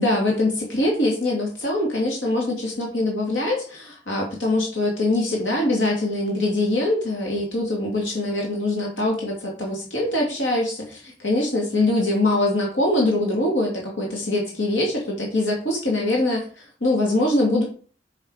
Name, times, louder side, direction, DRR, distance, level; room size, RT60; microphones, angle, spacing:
voice 1, 0.0-17.6, left 2 dB, 85° left, -1 dB, 2.8 m, -23 dB
7.0 x 6.4 x 5.0 m, 0.41 s
head